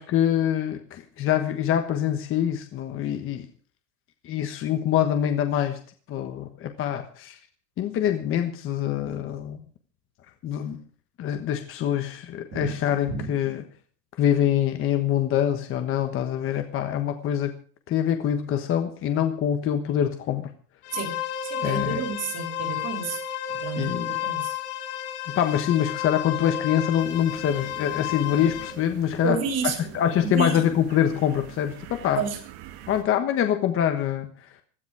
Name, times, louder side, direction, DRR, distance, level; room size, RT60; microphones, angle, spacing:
voice 1, 0.0-3.5 4.2-5.8 6.1-7.4 7.8-9.6 10.4-10.8 11.2-13.6 14.2-17.5 17.9-20.5 21.6-22.0 23.8-24.2 25.3-29.4 29.6-32.2 32.9-34.5, left 10 dB, 30° left, 7 dB, 1.3 m, -25 dB
sound 1, 20.8-28.7, left 10 dB, 75° left, 3.0 m, -32 dB
voice 2, 21.4-23.2 23.5-24.6 29.2-30.6 32.2-32.4, right 6 dB, 35° right, 6 dB, 3.3 m, -30 dB
sound 2, 27.0-33.0, right 12 dB, 55° right, 2.2 m, -45 dB
16.5 x 13.0 x 4.7 m, 0.42 s
cardioid pair, 170°, 46 cm